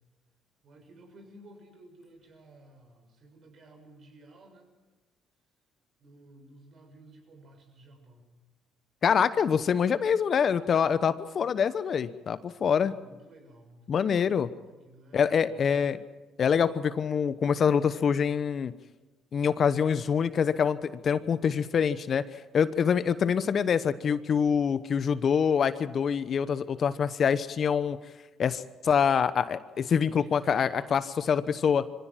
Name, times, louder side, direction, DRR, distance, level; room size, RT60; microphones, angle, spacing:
voice 1, 0.6-4.7 6.0-8.3 12.6-14.2 14.6-15.7 30.0-31.0, right 2 dB, 55° right, 4 dB, 6.7 m, -54 dB
voice 2, 9.0-12.9 13.9-14.5 15.1-16.0 16.4-18.7 19.3-22.2 22.5-28.0 28.4-31.0 31.3-31.8, left 7 dB, 50° left, 14 dB, 1.0 m, -25 dB
24.0 x 16.0 x 7.6 m, 1.2 s
supercardioid pair, 65°, 0 cm